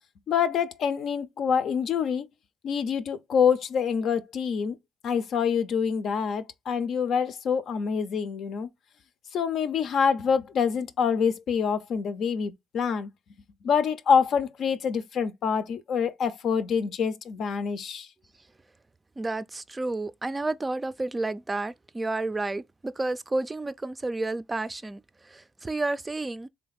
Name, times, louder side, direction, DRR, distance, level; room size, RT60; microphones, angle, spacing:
voice 1, 0.3-2.2 2.6-4.8 5.0-8.7 9.3-13.1 13.6-18.1, left 6 dB, 65° left, 0.6 m, -26 dB
voice 2, 19.2-25.0 25.3-26.5, right 2 dB, 20° right, 0.4 m, -31 dB
3.4 x 3.3 x 4.0 m
supercardioid pair, 70°, 0 cm